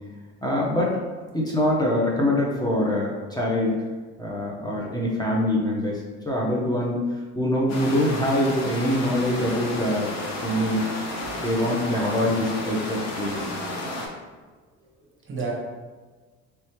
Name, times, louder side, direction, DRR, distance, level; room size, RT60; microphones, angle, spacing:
voice 1, 0.4-1.0 1.3-3.8 4.2-10.1 10.4-10.8 11.3-13.5, left 1 dB, 10° left, -4 dB, 0.8 m, -24 dB
sound 1, 7.7-14.1, left 1 dB, 50° left, 1.0 m, -32 dB
voice 2, 14.8-15.5, right 4 dB, 35° right, -1 dB, 0.9 m, -37 dB
3.3 x 3.1 x 3.0 m, 1.4 s
supercardioid pair, 75°, 34 cm